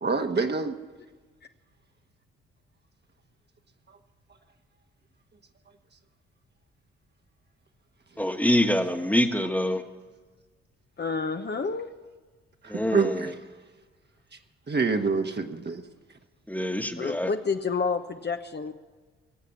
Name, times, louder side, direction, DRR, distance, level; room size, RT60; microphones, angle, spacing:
voice 1, 0.0-0.7 12.9-13.3 14.7-15.8, right 4 dB, 35° right, 1.5 m, -26 dB
voice 2, 8.2-9.8 12.7-13.3 16.5-17.3, left 1 dB, 5° left, 1.6 m, -25 dB
voice 3, 11.0-11.9 17.0-18.7, left 4 dB, 35° left, 1.0 m, -29 dB
21.0 x 8.3 x 7.2 m
hypercardioid pair, 40°, 31 cm